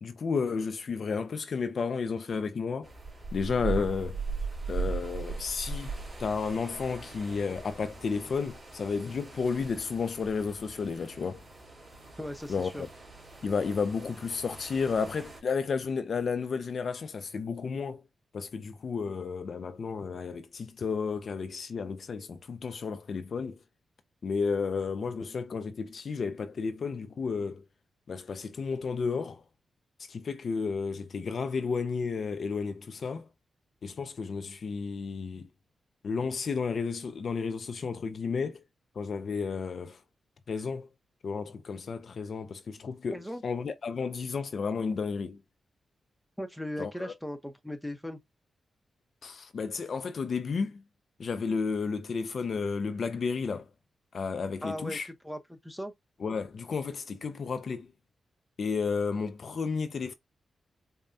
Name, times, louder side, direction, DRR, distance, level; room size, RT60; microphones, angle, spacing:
voice 1, 0.0-2.9 3.3-4.2 4.7-5.9 6.2-11.4 12.5-12.9 13.4-18.0 18.3-23.6 24.2-27.6 28.1-29.4 30.0-33.3 33.8-35.5 36.0-38.6 39.0-40.0 40.5-40.9 41.2-45.4 46.8-47.1 49.2-50.8 51.2-53.7 54.1-55.1 56.2-57.9 58.6-60.1, left 5 dB, 60° left, 0.5 m, -32 dB
sound 1, 2.8-15.4, right 4 dB, 30° right, 2.3 m, -39 dB
voice 2, 12.2-12.8 43.1-43.4 46.4-48.2 54.6-55.0 55.2-55.9, left 1 dB, ahead, 0.8 m, -38 dB
5.3 x 2.2 x 2.6 m
cardioid pair, 90°, 0 cm